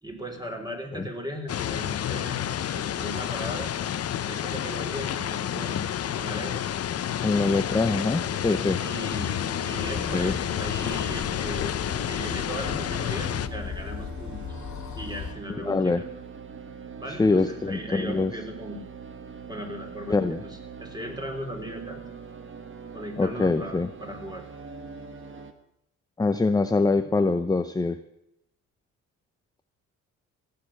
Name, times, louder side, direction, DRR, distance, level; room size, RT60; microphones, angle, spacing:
voice 1, 0.0-2.4 2.7-3.7 4.3-6.6 8.5-14.4 14.9-16.0 17.0-18.8 19.5-20.2 20.4-22.0 22.9-24.4, equal, 15° right, 3 dB, 3.7 m, -37 dB
sound 1, 1.5-13.5, left 10 dB, 55° left, 0.8 m, -30 dB
voice 2, 7.2-8.8 10.1-10.3 15.5-16.0 17.2-18.3 20.1-20.4 23.2-23.9 26.2-28.0, left 3 dB, 15° left, 10 dB, 0.7 m, -24 dB
sound 2, 7.2-25.5, right 4 dB, 40° right, 1.7 m, -43 dB
sound 3, 9.8-15.3, left 7 dB, 70° left, 2.0 m, -37 dB
16.5 x 6.8 x 8.8 m, 0.80 s
cardioid pair, 90°, 30 cm